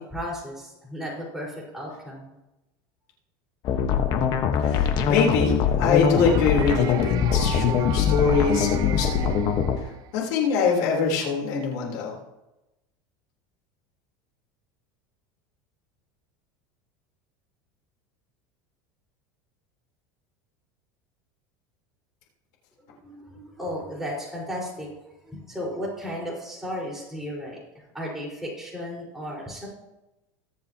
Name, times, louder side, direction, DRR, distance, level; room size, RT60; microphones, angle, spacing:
voice 1, 0.0-2.3 23.0-24.9 25.2-27.6 27.9-29.7, equal, 5° right, -4 dB, 4.9 m, -34 dB
sound 1, 3.6-9.8, left 7 dB, 50° left, 1.4 m, -22 dB
voice 2, 4.7-9.4 10.1-12.1, left 5 dB, 75° left, -1 dB, 3.8 m, -24 dB
sound 2, 6.1-10.3, right 9 dB, 45° right, 0.9 m, -36 dB
21.5 x 7.4 x 3.0 m, 0.98 s
supercardioid pair, 125°, 9 cm